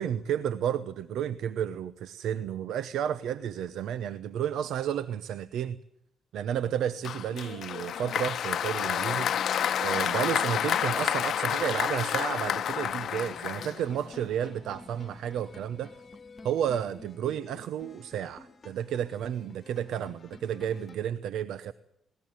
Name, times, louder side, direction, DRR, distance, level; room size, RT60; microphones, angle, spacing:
voice 1, 0.0-5.8 6.3-15.9 16.4-21.7, right 9 dB, 80° right, 0.8 m, -32 dB
Applause, 7.0-14.2, left 9 dB, 65° left, 0.9 m, -29 dB
sound 1, 9.0-21.0, left 3 dB, 35° left, 1.8 m, -48 dB
20.0 x 18.5 x 9.3 m
cardioid pair, 90°, 0 cm